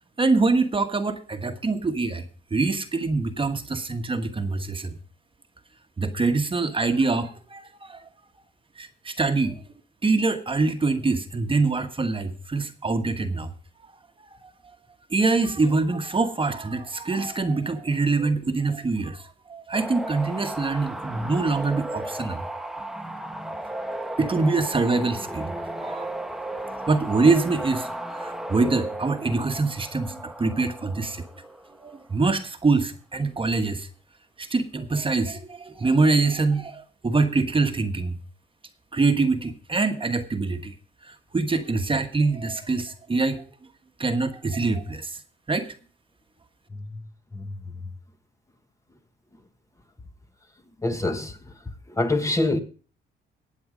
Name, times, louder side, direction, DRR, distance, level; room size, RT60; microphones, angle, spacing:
voice 1, 0.2-5.0 6.0-8.1 8.8-9.6 10.0-13.5 14.4-14.8 15.1-22.4 23.5-23.8 24.2-26.1 26.9-31.2 31.8-33.9 34.4-38.2 38.9-40.7 41.0-43.4 44.0-45.2 45.5-45.7, right 3 dB, 25° right, 1.5 m, -24 dB
sound 1, 19.7-32.1 35.9-36.2, right 1 dB, ahead, 1.2 m, -35 dB
voice 2, 47.3-47.6 50.8-51.4 51.9-52.6, left 2 dB, 15° left, 1.5 m, -25 dB
16.0 x 8.8 x 5.1 m
cardioid pair, 90°, 20 cm